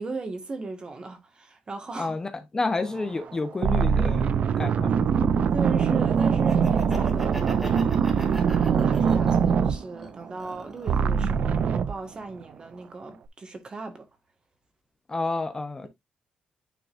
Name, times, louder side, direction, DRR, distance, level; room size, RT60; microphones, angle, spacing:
voice 1, 0.0-2.1 5.5-14.1, right 3 dB, 35° right, 1.6 m, -37 dB
voice 2, 2.0-4.3 4.6-5.5 15.1-15.9, left 3 dB, 25° left, 0.8 m, -30 dB
sound 1, 3.0-3.2 3.6-10.5 10.9-12.0, right 6 dB, 60° right, 0.5 m, -23 dB
Laughter, 6.3-9.5 10.0-11.1, equal, 10° right, 2.5 m, -40 dB
9.4 x 3.9 x 2.5 m
cardioid pair, 100°, 3 cm